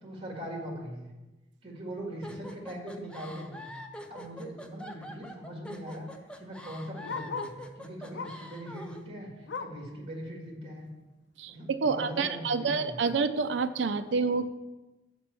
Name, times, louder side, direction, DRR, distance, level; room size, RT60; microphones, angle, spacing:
voice 1, 0.0-1.1 1.6-3.7 4.1-6.1 6.4-10.9 11.5-13.1, equal, 30° right, -1 dB, 1.9 m, -41 dB
sound 1, 2.2-9.0, equal, 5° left, 0.5 m, -45 dB
Bark, 3.9-4.2 4.5-4.6 4.8-7.7 8.1-8.5 8.9-9.9 10.4-10.5 10.9-11.0 11.6-11.7, left 5 dB, 65° left, 0.5 m, -41 dB
voice 2, 11.4-14.5, right 4 dB, 65° right, 10 dB, 0.4 m, -28 dB
6.0 x 5.2 x 6.8 m, 1.1 s
head